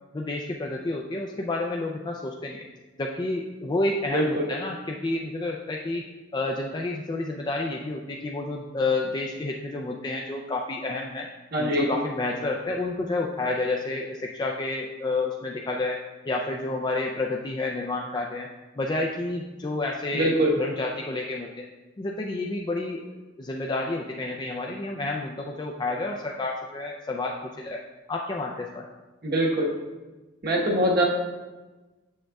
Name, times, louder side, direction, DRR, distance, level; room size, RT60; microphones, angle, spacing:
voice 1, 0.1-2.7 3.0-6.0 6.3-11.3 11.6-16.0 16.3-18.5 18.8-21.7 22.0-27.8 28.1-28.9, left 2 dB, 20° left, 0 dB, 0.3 m, -30 dB
voice 2, 4.1-4.5 11.5-11.9 20.1-20.5 29.2-29.7 30.4-31.0, right 1 dB, 50° right, -2 dB, 1.2 m, -23 dB
7.4 x 6.4 x 2.3 m, 1.2 s
head